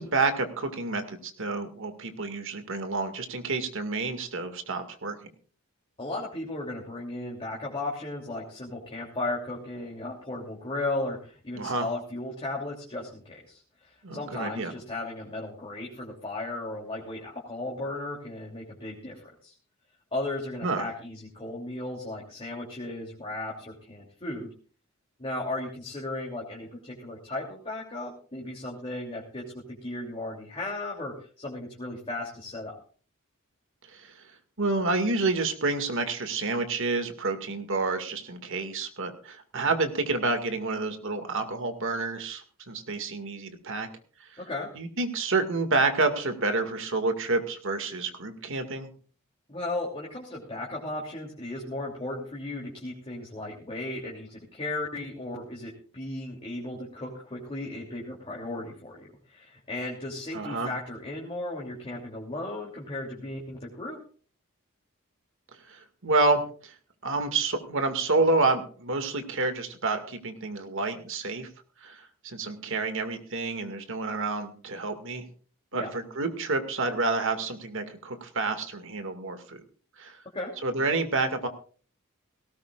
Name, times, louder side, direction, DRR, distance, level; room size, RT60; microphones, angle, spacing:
voice 1, 0.0-5.2 11.6-11.9 14.0-14.7 20.6-20.9 33.9-34.1 34.6-43.9 44.2-44.3 44.7-48.9 60.3-60.7 65.7-66.7 67.0-71.5 71.8-75.3 75.7-79.6 80.0-80.2 80.6-81.5, right 3 dB, 65° right, 7 dB, 2.1 m, -29 dB
voice 2, 6.0-19.5 20.1-24.5 25.2-32.8 44.4-44.7 49.5-64.0 75.7-75.9 80.3-80.5, left 2 dB, 25° left, -2 dB, 3.0 m, -35 dB
18.0 x 18.0 x 2.5 m, 0.41 s
head